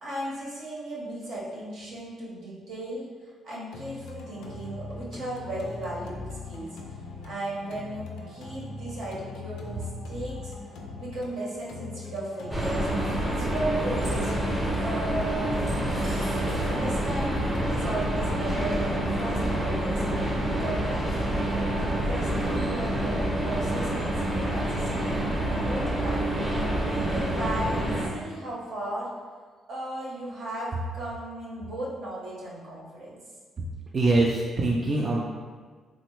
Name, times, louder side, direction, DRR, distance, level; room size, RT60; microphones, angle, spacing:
voice 1, 0.0-3.0 3.4-6.7 7.2-10.5 11.0-12.9 13.2-15.5 16.4-20.0 20.4-25.2 25.7-29.1 29.7-33.2, right 1 dB, 70° right, -5 dB, 0.9 m, -36 dB
sound 1, 3.7-21.7, left 3 dB, 85° left, 0.3 m, -41 dB
sound 2, 12.5-28.1, right 1 dB, 20° right, 0.7 m, -27 dB
voice 2, 33.9-35.2, right 2 dB, 35° right, -3 dB, 0.3 m, -23 dB
3.2 x 2.1 x 3.0 m, 1.5 s
cardioid pair, 90°, 0 cm